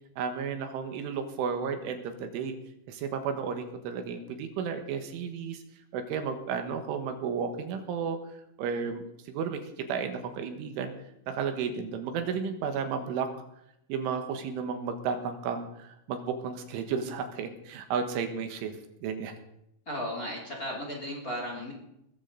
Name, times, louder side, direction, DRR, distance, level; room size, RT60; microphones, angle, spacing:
voice 1, 0.2-2.6 2.9-5.6 5.9-8.2 8.6-10.9 11.3-13.3 13.9-18.7 19.0-19.4, right 6 dB, 75° right, 7 dB, 3.8 m, -33 dB
voice 2, 19.9-21.7, equal, 20° left, 0 dB, 3.0 m, -35 dB
20.0 x 14.5 x 4.0 m, 0.79 s
omnidirectional pair, 5.8 m